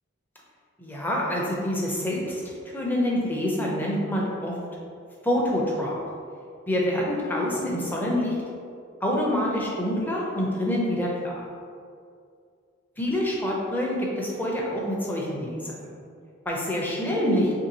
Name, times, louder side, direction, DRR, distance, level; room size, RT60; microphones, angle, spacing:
voice 1, 0.8-2.4 2.7-4.5 5.2-6.0 6.7-8.4 9.0-11.5 13.0-15.8 16.5-17.5, left 1 dB, 10° left, -3 dB, 0.5 m, -26 dB
3.0 x 2.7 x 4.0 m, 2.3 s
head